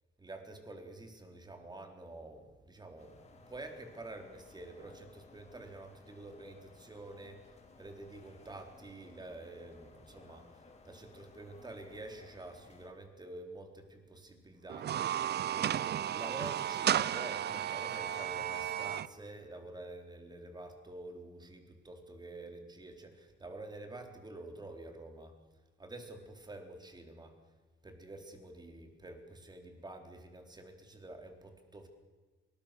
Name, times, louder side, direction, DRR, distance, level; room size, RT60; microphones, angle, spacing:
voice 1, 0.2-15.1 15.5-25.3 25.8-27.3 27.8-31.9, right 2 dB, 20° right, 4 dB, 4.1 m, -48 dB
sound 1, 3.0-12.9, left 3 dB, 35° left, 4.0 m, -59 dB
sound 2, 14.7-19.1, right 10 dB, 55° right, 0.7 m, -33 dB
24.0 x 20.0 x 6.8 m, 1.3 s
cardioid pair, 90°, 20 cm